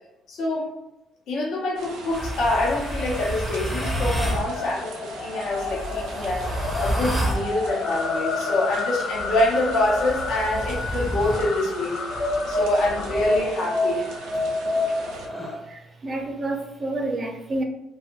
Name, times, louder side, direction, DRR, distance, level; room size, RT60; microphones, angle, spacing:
voice 1, 0.3-0.8 1.3-12.1 12.5-14.4, left 2 dB, 70° left, -3 dB, 0.8 m, -26 dB
sound 1, 1.7-15.3, right 3 dB, 85° right, 0.6 m, -41 dB
sound 2, 2.1-14.5, left 4 dB, 50° left, 0.4 m, -32 dB
sound 3, 2.1-4.5 5.4-7.5 9.1-11.5 12.1-15.6, equal, 5° left, 0.7 m, -28 dB
voice 2, 15.7-17.6, right 2 dB, 35° right, 3 dB, 0.6 m, -29 dB
2.5 x 2.3 x 2.9 m, 0.93 s
supercardioid pair, 75°, 0 cm